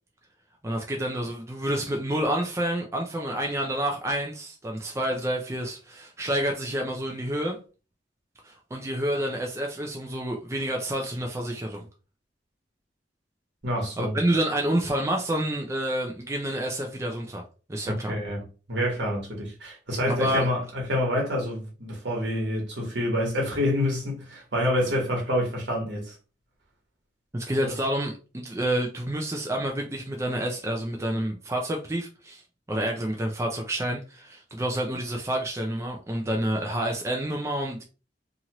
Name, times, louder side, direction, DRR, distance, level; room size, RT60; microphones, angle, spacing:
voice 1, 0.6-7.6 8.4-11.9 14.0-17.4 17.7-18.1 20.1-20.5 27.3-32.4 32.7-37.8, right 1 dB, 15° right, 0.4 m, -28 dB
voice 2, 13.6-14.2 17.9-26.1 27.6-27.7, left 1 dB, 65° right, 1.3 m, -27 dB
2.8 x 2.5 x 2.9 m
head